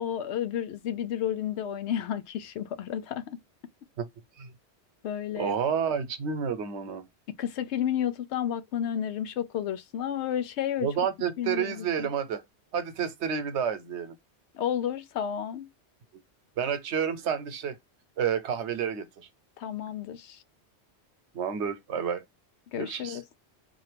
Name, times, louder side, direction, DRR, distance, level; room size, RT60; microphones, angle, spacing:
voice 1, 0.0-3.4 5.0-5.5 7.4-11.1 11.4-12.1 14.5-15.7 19.6-20.4 22.7-23.2, left 9 dB, 80° left, 0.9 m, -31 dB
voice 2, 5.4-7.0 10.8-12.4 12.7-14.1 16.6-17.8 18.2-19.3 21.3-22.2 22.8-23.2, right 7 dB, 85° right, 1.0 m, -30 dB
3.9 x 2.6 x 3.3 m
omnidirectional pair, 1.1 m